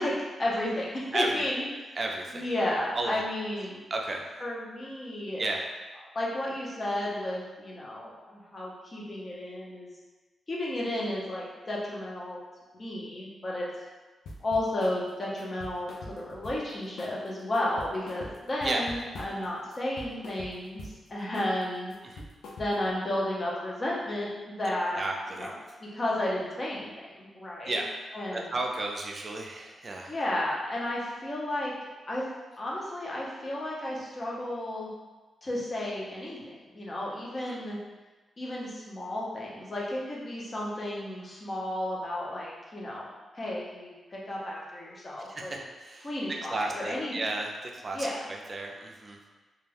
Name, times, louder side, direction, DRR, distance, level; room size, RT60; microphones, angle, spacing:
voice 1, 0.0-1.6 2.3-3.8 4.4-5.4 6.1-9.9 10.5-12.4 12.8-13.7 14.4-21.9 22.6-25.0 25.4-25.5 25.8-27.8 28.1-28.5 30.1-31.7 32.1-32.2 32.6-34.9 35.4-36.4 36.7-37.8 38.4-43.1 43.3-45.5 46.0-47.1 47.9-48.2, left 1 dB, 35° left, -4 dB, 0.7 m, -33 dB
voice 2, 1.1-1.6 1.9-2.5 2.9-3.2 3.9-4.2 5.4-5.7 18.6-18.9 22.0-22.2 25.0-25.5 27.7-27.9 28.3-30.1 37.4-37.6 45.3-46.1 46.5-49.2, right 2 dB, 40° right, 0 dB, 0.4 m, -33 dB
sound 1, 14.2-15.0 15.4-16.7 17.0-17.3 17.5-19.5 19.7-21.0 21.3-21.6 21.9-22.9, left 1 dB, 85° left, 0.4 m, -44 dB
2.3 x 2.2 x 3.2 m, 1.3 s
cardioid pair, 95°, 0 cm